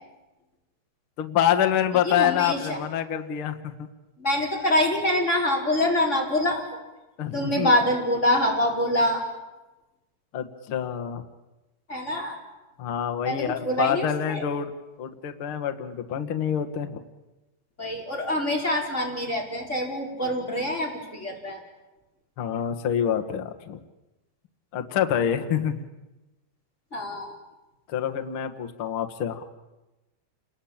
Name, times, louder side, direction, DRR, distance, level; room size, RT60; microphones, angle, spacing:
voice 1, 1.2-3.9 7.2-7.7 10.3-11.2 12.8-14.7 15.0-17.0 22.4-23.8 24.7-25.8 27.9-29.4, left 9 dB, 50° left, 7 dB, 1.7 m, -26 dB
voice 2, 2.0-2.8 4.2-6.6 7.3-9.2 11.9-12.6 13.2-14.4 17.8-21.6 26.9-27.4, left 1 dB, 20° left, -1 dB, 4.8 m, -25 dB
29.0 x 21.0 x 8.8 m, 1.0 s
omnidirectional pair, 4.4 m